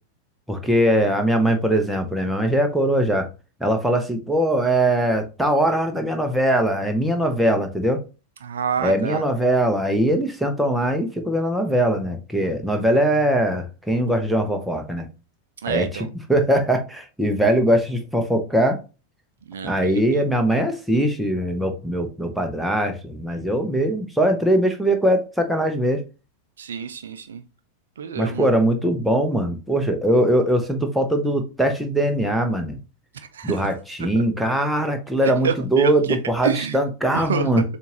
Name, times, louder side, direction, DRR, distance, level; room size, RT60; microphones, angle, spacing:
voice 1, 0.5-3.3 3.6-8.0 8.8-15.1 15.7-18.8 19.6-26.0 28.2-32.8 33.4-37.6, right 1 dB, ahead, 0.8 m, -21 dB
voice 2, 8.4-9.2 15.6-16.1 19.5-20.2 26.6-27.4 28.0-28.5 33.1-33.7 34.0-34.2 35.4-36.2 36.4-36.8 37.1-37.6, right 7 dB, 65° right, 0.5 m, -28 dB
6.8 x 2.5 x 2.9 m
figure-of-eight pair, 90°, 0 cm